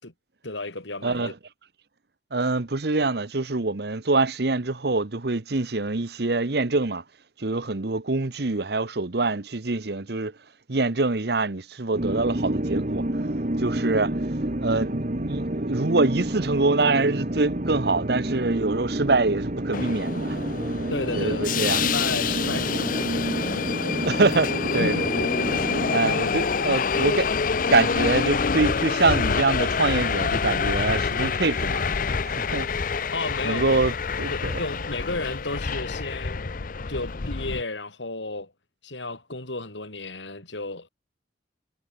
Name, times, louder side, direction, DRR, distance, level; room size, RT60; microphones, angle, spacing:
voice 1, 0.4-1.3 20.9-23.6 24.8-25.3 33.1-33.8 34.3-36.5 36.9-38.5 38.8-40.9, left 2 dB, 85° left, 4.9 m, -33 dB
voice 2, 1.0-1.3 2.3-7.0 7.4-10.3 10.7-13.1 13.6-14.1 14.6-20.4 21.1-21.8 23.8-25.3 25.9-27.3 27.7-31.8 32.2-32.7 33.4-33.9 34.2-34.5, right 3 dB, 60° right, 1.1 m, -25 dB
sound 1, 11.9-25.9, right 1 dB, 45° right, 1.6 m, -29 dB
Subway metro underground, 19.7-37.6, left 5 dB, 50° left, 0.7 m, -27 dB
head